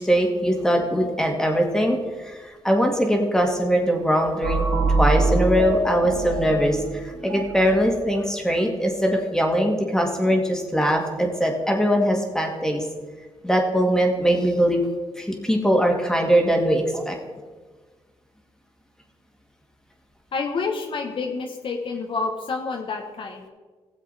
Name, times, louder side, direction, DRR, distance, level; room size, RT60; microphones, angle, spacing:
voice 1, 0.0-2.0 2.2-12.8 13.4-14.9 15.2-17.2, equal, 5° left, 1 dB, 2.2 m, -21 dB
sound 1, 4.4-8.0, right 3 dB, 60° right, 1.6 m, -24 dB
voice 2, 20.3-23.4, left 4 dB, 55° left, 2 dB, 1.2 m, -28 dB
17.0 x 7.5 x 4.1 m, 1.4 s
cardioid pair, 80°, 11 cm